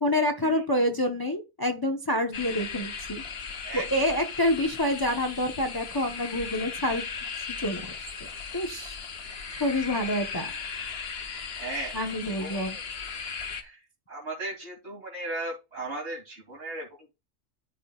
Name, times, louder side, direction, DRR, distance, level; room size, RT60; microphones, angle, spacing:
voice 1, 0.0-3.2 3.7-7.0 7.6-7.8 8.5-9.0 9.6-10.5 11.9-12.8, left 1 dB, 20° left, 4 dB, 1.1 m, -27 dB
sound 1, 2.3-13.6, left 5 dB, 65° left, 1.2 m, -37 dB
voice 2, 3.6-4.1 9.5-9.7 11.5-12.8 13.6-13.8 14.1-16.9, right 2 dB, 75° right, -3 dB, 3.2 m, -37 dB
13.5 x 6.3 x 2.4 m, 0.26 s
omnidirectional pair, 1.1 m